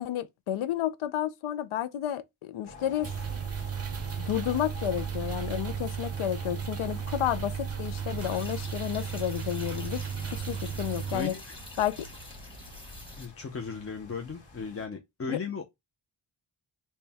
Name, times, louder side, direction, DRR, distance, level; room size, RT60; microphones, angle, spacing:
voice 1, 0.0-3.1 4.2-10.0 10.3-11.3 11.8-12.1 15.3-15.4, left 11 dB, 85° left, 0.5 m, -31 dB
sound 1, 2.6-14.9, left 3 dB, 70° left, 1.7 m, -50 dB
sound 2, 3.0-11.2, right 7 dB, 30° right, 0.5 m, -35 dB
sound 3, 8.2-13.3, left 1 dB, 10° left, 1.2 m, -45 dB
voice 2, 11.1-11.6 13.2-15.6, left 4 dB, 30° left, 0.4 m, -36 dB
4.3 x 2.2 x 3.3 m
wide cardioid pair, 165°, 48 cm